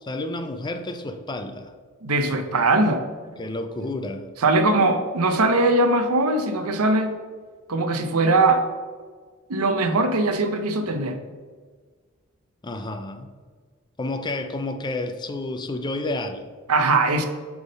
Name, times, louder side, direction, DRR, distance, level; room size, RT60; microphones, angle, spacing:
voice 1, 0.0-1.7 3.4-4.3 12.6-13.3 14.0-16.4, left 2 dB, 20° left, 8 dB, 0.4 m, -30 dB
voice 2, 2.0-3.0 3.8-3.9 4.4-7.1 7.7-8.6 9.5-11.2 16.7-17.3, right 2 dB, 90° right, 8 dB, 0.7 m, -20 dB
8.0 x 3.6 x 5.2 m, 1.5 s
head